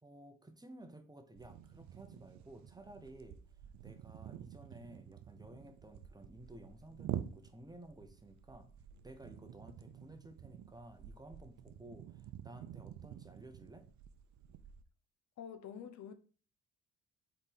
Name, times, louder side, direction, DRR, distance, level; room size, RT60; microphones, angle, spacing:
voice 1, 0.0-3.4 3.8-8.7 9.0-13.9, right 1 dB, 15° right, 1.0 m, -54 dB
sound 1, 1.3-14.8, right 11 dB, 70° right, 0.6 m, -49 dB
voice 2, 15.4-16.1, left 8 dB, 65° left, 0.8 m, -47 dB
4.5 x 4.1 x 5.2 m
cardioid pair, 90°, 30 cm